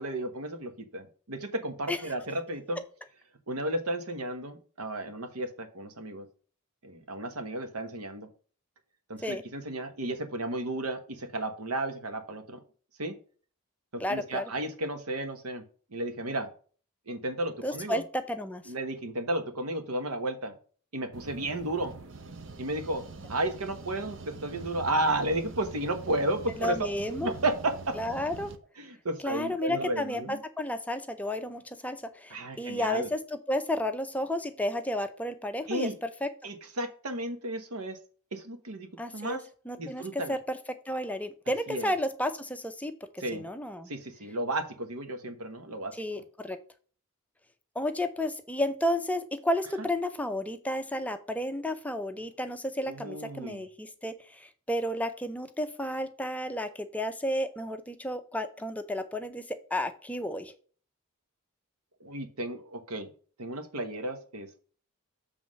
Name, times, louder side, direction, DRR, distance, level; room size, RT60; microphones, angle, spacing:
voice 1, 0.0-2.8 3.5-6.2 6.8-8.3 9.1-12.6 13.0-13.1 13.9-15.6 15.9-16.5 17.1-18.0 18.7-20.5 20.9-21.9 22.6-23.0 23.3-26.8 27.1-27.9 28.8-30.4 32.3-33.1 35.7-35.9 36.4-38.0 38.3-39.5 39.8-40.4 41.7-41.9 43.2-43.5 43.9-46.2 49.8-49.9 52.8-53.6 62.0-63.1 63.4-64.6, right 1 dB, 80° right, 7 dB, 1.2 m, -33 dB
voice 2, 14.0-14.4 17.6-18.6 26.6-27.3 28.0-28.5 29.2-33.2 33.5-35.9 36.2-36.3 39.0-39.4 39.7-40.6 40.9-43.9 46.0-46.6 47.8-60.5, left 1 dB, 5° left, 8 dB, 0.6 m, -32 dB
sound 1, 21.1-28.6, right 3 dB, 55° right, 0.7 m, -44 dB
7.5 x 3.5 x 6.3 m, 0.41 s
head